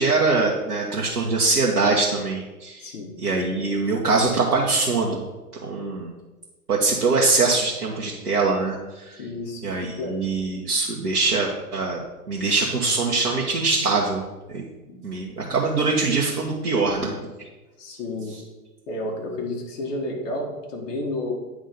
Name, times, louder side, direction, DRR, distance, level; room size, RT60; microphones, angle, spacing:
voice 1, 0.0-2.9 3.2-5.2 5.6-6.1 6.7-9.2 9.6-12.0 12.3-14.2 14.5-14.6 15.0-17.2, right 3 dB, 75° right, -2 dB, 1.2 m, -23 dB
voice 2, 9.2-9.6 10.0-10.2 14.9-15.0 17.8-18.4 18.9-21.3, left 2 dB, 50° left, -1 dB, 1.8 m, -31 dB
9.2 x 3.6 x 5.3 m, 1.1 s
figure-of-eight pair, 105°, 47 cm